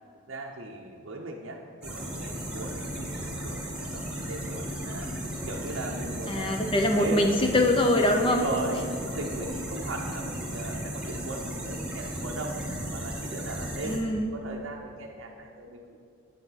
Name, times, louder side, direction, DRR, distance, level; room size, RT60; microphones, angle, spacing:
voice 1, 0.3-5.1 5.5-6.6 7.0-7.4 8.2-12.6 12.9-16.0, right 2 dB, 65° right, 0 dB, 0.6 m, -38 dB
sound 1, 1.8-14.0, equal, 5° right, 1.0 m, -35 dB
voice 2, 6.3-8.4 13.8-14.3, left 1 dB, 25° left, 3 dB, 0.5 m, -23 dB
9.4 x 6.8 x 4.1 m, 2.4 s
head